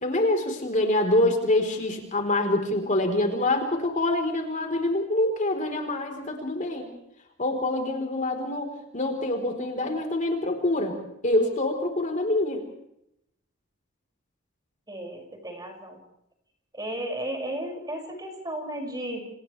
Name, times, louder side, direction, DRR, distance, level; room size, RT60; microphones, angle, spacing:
voice 1, 0.0-6.9 7.4-11.0 11.2-12.6, left 1 dB, 35° left, 3 dB, 4.1 m, -25 dB
voice 2, 14.9-16.0 16.7-19.2, right 1 dB, 20° right, 2 dB, 6.5 m, -34 dB
30.0 x 28.5 x 3.4 m, 0.78 s
head